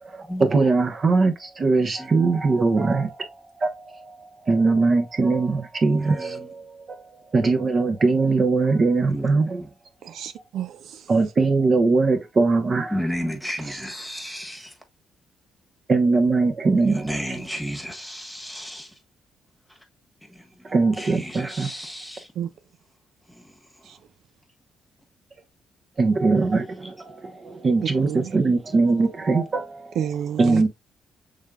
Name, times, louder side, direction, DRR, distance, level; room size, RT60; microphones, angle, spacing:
voice 1, 0.1-3.3 3.6-4.2 4.4-7.0 7.3-9.6 11.1-12.9 15.9-17.1 20.7-21.7 26.0-30.0 30.4-30.7, right 3 dB, 40° right, 1.0 m, -21 dB
voice 2, 6.0-6.5 9.1-9.7 12.9-14.7 16.8-18.9 20.3-22.3 23.3-23.5 26.8-26.9, equal, 5° left, 1.4 m, -33 dB
voice 3, 10.0-11.1 22.4-22.5 23.9-24.0 28.0-28.3 30.0-30.6, right 9 dB, 75° right, 0.4 m, -30 dB
6.3 x 3.6 x 2.4 m
cardioid pair, 90°, 0 cm